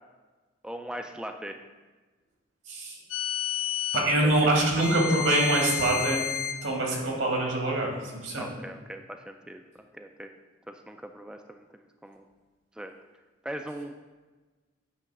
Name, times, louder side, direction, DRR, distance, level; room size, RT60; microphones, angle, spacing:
voice 1, 0.6-1.6 4.2-4.3 4.8-4.9 8.4-10.3 10.7-12.2 12.8-12.9 13.4-13.9, right 1 dB, 5° right, 5 dB, 0.3 m, -40 dB
voice 2, 2.7-3.0 3.9-6.2 6.6-8.5, right 1 dB, 85° right, -1 dB, 1.9 m, -25 dB
sound 1, 3.1-4.1 4.8-6.6, left 9 dB, 85° left, 0.6 m, -31 dB
9.1 x 3.1 x 6.0 m, 1.3 s
head